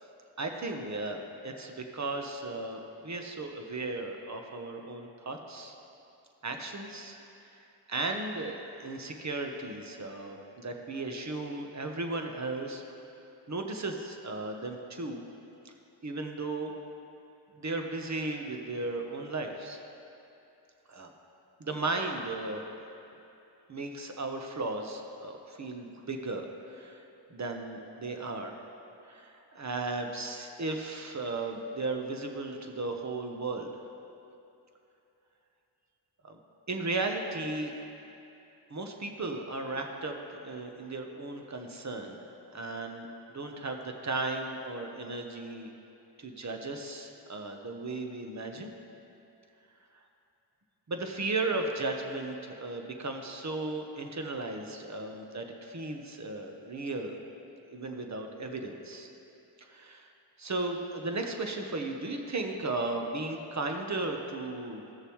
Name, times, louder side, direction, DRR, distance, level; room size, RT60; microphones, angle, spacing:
voice 1, 0.4-5.8 6.4-7.2 7.9-12.8 13.5-15.2 15.6-15.7 16.0-16.7 17.6-19.8 20.9-21.1 21.6-22.6 23.7-27.0 27.3-28.6 29.1-33.7 36.2-36.4 36.7-37.7 38.7-45.7 46.2-48.7 50.9-57.2 57.7-59.1 59.6-60.1 60.4-64.8, right 2 dB, 35° right, 3 dB, 1.1 m, -35 dB
14.5 x 6.6 x 3.1 m, 2.8 s
cardioid pair, 45°, 48 cm